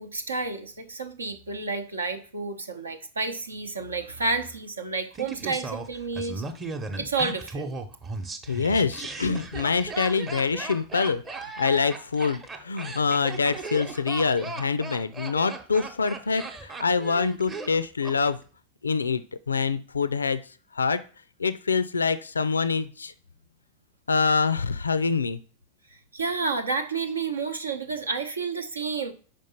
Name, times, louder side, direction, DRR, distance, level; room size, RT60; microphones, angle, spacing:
voice 1, 0.0-6.4 7.0-7.7 26.1-29.1, right 4 dB, 75° right, 7 dB, 0.8 m, -30 dB
Laughter, 5.1-18.2 18.4-18.5, right 3 dB, 20° right, 0.9 m, -37 dB
voice 2, 8.5-18.4 18.8-20.4 20.7-21.0 21.4-23.1 24.1-25.4, left 5 dB, 75° left, 15 dB, 0.4 m, -25 dB
5.2 x 5.2 x 5.6 m, 0.39 s
figure-of-eight pair, 90°, 0 cm